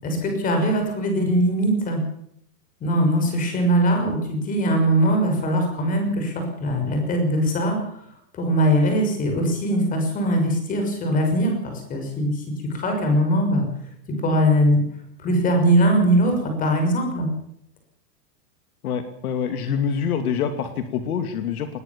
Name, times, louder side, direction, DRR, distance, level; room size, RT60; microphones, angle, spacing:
voice 1, 0.0-2.0 2.8-7.8 8.3-13.7 14.1-14.8 15.2-17.3, equal, 15° left, 4 dB, 6.2 m, -21 dB
voice 2, 18.8-21.7, left 7 dB, 65° left, 8 dB, 2.8 m, -25 dB
21.0 x 19.0 x 7.3 m, 0.70 s
supercardioid pair, 170°, 48 cm